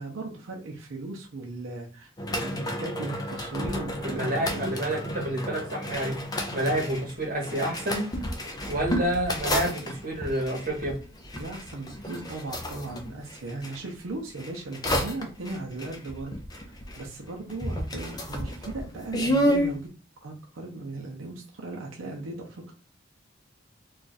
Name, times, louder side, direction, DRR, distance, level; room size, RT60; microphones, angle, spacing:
voice 1, 0.0-5.0 11.3-16.7 17.0-19.9 20.2-22.7, right 2 dB, 85° right, 0 dB, 0.6 m, -37 dB
sound 1, 2.2-13.8 14.4-17.2 17.5-19.7, equal, 20° left, 0.4 m, -31 dB
voice 2, 4.1-6.2 6.5-8.1 8.7-11.0, right 1 dB, 45° right, -1 dB, 1.1 m, -28 dB
2.4 x 2.4 x 4.0 m, 0.36 s
head